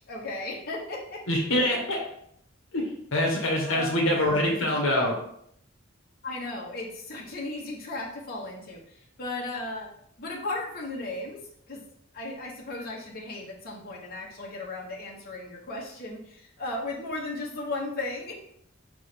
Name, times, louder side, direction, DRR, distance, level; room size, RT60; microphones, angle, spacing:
voice 1, 0.0-1.2 3.6-4.2 6.2-9.9 10.2-11.4 11.7-11.8 12.1-18.3, left 2 dB, 50° left, -3 dB, 1.5 m, -36 dB
voice 2, 1.3-2.0 2.7-5.1, left 1 dB, 75° left, -1 dB, 1.4 m, -25 dB
5.5 x 3.8 x 5.2 m, 0.69 s
head